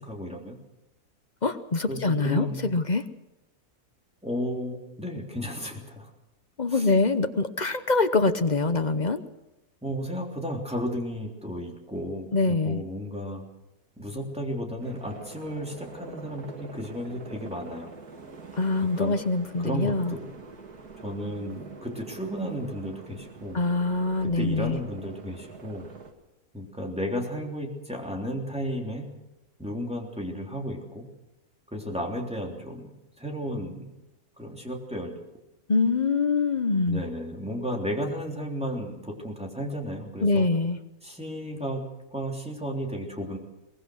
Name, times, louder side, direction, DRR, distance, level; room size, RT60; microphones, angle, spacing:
voice 1, 0.1-0.6 1.9-2.7 4.2-6.1 6.7-6.9 9.8-13.5 14.0-17.9 19.0-19.2 19.6-20.3 21.0-23.6 24.2-25.9 26.5-29.1 29.6-31.1 31.7-32.9 33.2-33.9 34.4-35.1 36.9-40.4 41.0-41.8 42.1-43.4, equal, 5° right, 0 dB, 3.3 m, -33 dB
voice 2, 1.4-3.0 6.6-9.2 12.3-12.8 18.5-20.1 23.5-24.8 35.7-37.0 40.2-40.8, left 3 dB, 35° left, 10 dB, 0.9 m, -24 dB
sound 1, 14.8-26.1, right 4 dB, 85° right, 2.4 m, -45 dB
23.0 x 19.5 x 6.4 m, 0.97 s
omnidirectional pair, 1.6 m